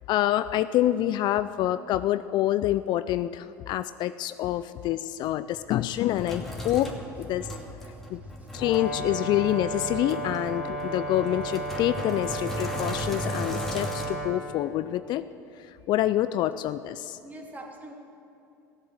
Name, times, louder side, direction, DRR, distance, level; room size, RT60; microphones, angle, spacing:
voice 1, 0.1-7.5 8.1-8.2 8.5-15.3 15.9-17.2, left 13 dB, 55° left, 14 dB, 0.4 m, -27 dB
Sink (filling or washing), 5.2-14.1, left 1 dB, 5° left, 2.5 m, -38 dB
voice 2, 7.9-8.6 17.2-17.9, right 1 dB, 15° right, -1 dB, 3.0 m, -45 dB
Brass instrument, 8.6-14.4, right 2 dB, 85° left, 1.8 m, -34 dB
16.5 x 8.0 x 7.8 m, 2.7 s
hypercardioid pair, 80°, 9 cm